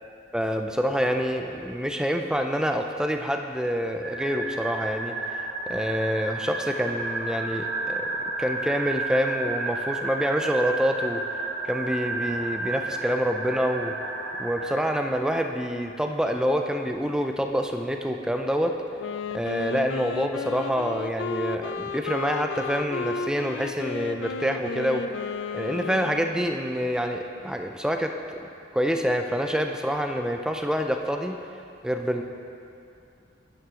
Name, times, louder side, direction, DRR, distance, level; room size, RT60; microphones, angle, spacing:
voice 1, 0.3-8.1 8.4-11.2 11.6-13.9 14.4-18.7 19.3-25.0 25.5-28.1 28.7-31.3 31.8-32.2, equal, 5° right, 4 dB, 0.5 m, -27 dB
sound 1, 4.0-14.8, right 2 dB, 75° right, 1.0 m, -31 dB
Wind instrument woodwind instrument, 19.0-26.6, left 5 dB, 90° left, 0.4 m, -33 dB
10.5 x 9.7 x 3.8 m, 2.6 s
head